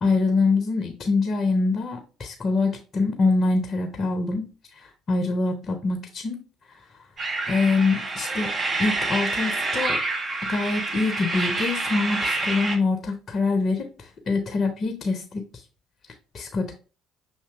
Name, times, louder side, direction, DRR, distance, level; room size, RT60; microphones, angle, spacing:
voice 1, 0.0-4.5 4.8-6.4 7.5-8.5 8.8-10.0 10.5-15.4 16.3-16.7, left 3 dB, 40° left, 0.7 m, -24 dB
sound 1, 7.2-12.8, right 2 dB, 35° right, 0.7 m, -27 dB
6.6 x 2.8 x 2.3 m
figure-of-eight pair, 50°, 0 cm